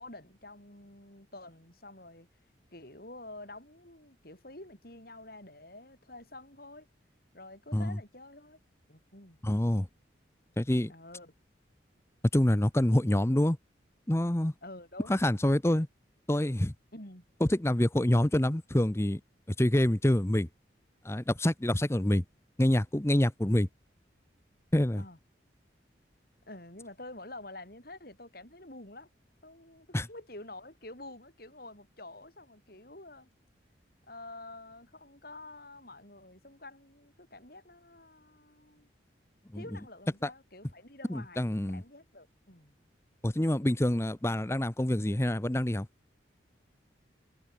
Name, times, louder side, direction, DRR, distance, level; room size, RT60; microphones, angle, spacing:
voice 1, 0.0-2.3 2.7-6.9 7.3-8.6 8.9-9.4 10.9-11.3 14.6-15.2 16.9-17.2 25.0-25.2 26.5-29.1 29.4-33.3 34.1-38.9 39.5-42.7, left 2 dB, 50° left, 7.6 m, -48 dB
voice 2, 9.4-9.9 10.6-10.9 12.3-13.6 14.1-14.5 15.1-15.9 16.3-16.7 17.4-19.2 19.6-20.5 21.0-22.2 22.6-23.7 24.7-25.0 29.9-30.1 39.5-39.6 40.2-40.3 41.1-41.8 43.2-45.9, left 1 dB, 15° left, 0.8 m, -26 dB
head